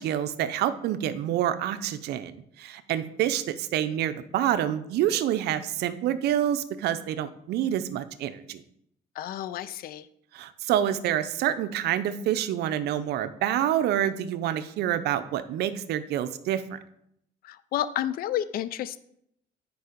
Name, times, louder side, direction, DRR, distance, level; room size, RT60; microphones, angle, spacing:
voice 1, 0.0-8.6 10.3-16.8, right 11 dB, 75° right, 12 dB, 0.7 m, -27 dB
voice 2, 9.2-10.1 17.4-19.0, left 11 dB, 60° left, 15 dB, 0.5 m, -31 dB
9.4 x 4.7 x 5.1 m, 0.75 s
cardioid pair, 110°, 17 cm